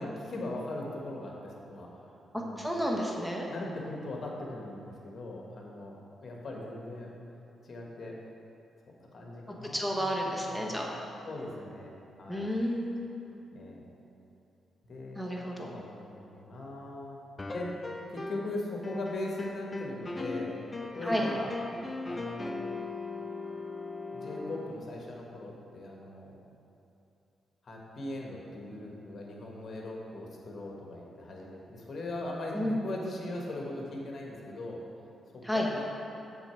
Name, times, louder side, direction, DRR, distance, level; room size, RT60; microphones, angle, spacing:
voice 1, 0.0-1.9 2.3-2.6 3.5-6.0 6.2-7.1 7.6-8.2 9.0-10.8 11.2-12.5 13.5-13.8 14.8-17.2 17.5-17.8 18.1-21.5 22.1-22.6 24.1-26.4 27.6-34.8 35.3-35.8, left 1 dB, 55° left, -1 dB, 1.3 m, -40 dB
voice 2, 2.3-3.5 9.5-10.9 12.3-13.2 15.1-15.7 21.0-21.3 32.5-32.8 35.4-35.7, equal, 5° right, -1 dB, 1.2 m, -31 dB
sound 1, 17.4-18.5 18.8-24.7, left 3 dB, 30° left, 0.5 m, -39 dB
7.0 x 3.9 x 5.7 m, 2.8 s
supercardioid pair, 60°, 0 cm